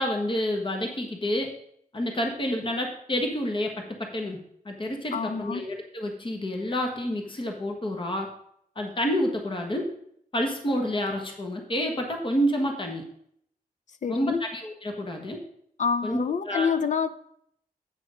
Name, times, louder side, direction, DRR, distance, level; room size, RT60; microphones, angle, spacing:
voice 1, 0.0-1.5 1.9-4.4 4.6-8.3 8.8-9.9 10.3-13.0 14.1-15.4 16.0-16.2 16.5-16.7, equal, 35° left, 1.3 m, -28 dB
voice 2, 5.1-5.7 14.0-14.5 15.8-17.1, left 6 dB, 55° left, 0.6 m, -27 dB
8.4 x 6.2 x 4.9 m
wide cardioid pair, 130°, 15 cm